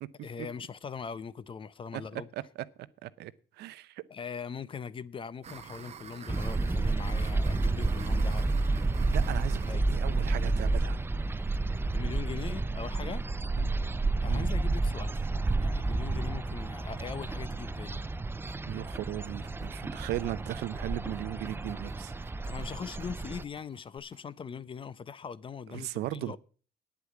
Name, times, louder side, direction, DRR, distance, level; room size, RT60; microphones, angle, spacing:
voice 1, 0.2-2.3 4.1-8.5 9.6-9.9 11.9-13.2 14.2-15.3 15.6-18.0 22.4-26.4, left 6 dB, 30° left, 0.6 m, -41 dB
voice 2, 3.6-4.0 9.1-11.0 13.6-13.7 14.2-14.5 18.7-22.1 25.7-26.4, right 14 dB, 80° right, 0.7 m, -37 dB
sound 1, 5.4-13.1 13.4-13.5 13.8-13.9 14.2-14.3 14.6-14.8 15.1-24.2, right 8 dB, 40° right, 0.8 m, -51 dB
sound 2, 6.3-23.4, right 3 dB, 15° right, 0.5 m, -30 dB
sound 3, 12.9-24.0, right 1 dB, 5° left, 2.6 m, -52 dB
9.6 x 8.3 x 7.1 m
cardioid pair, 110°, 17 cm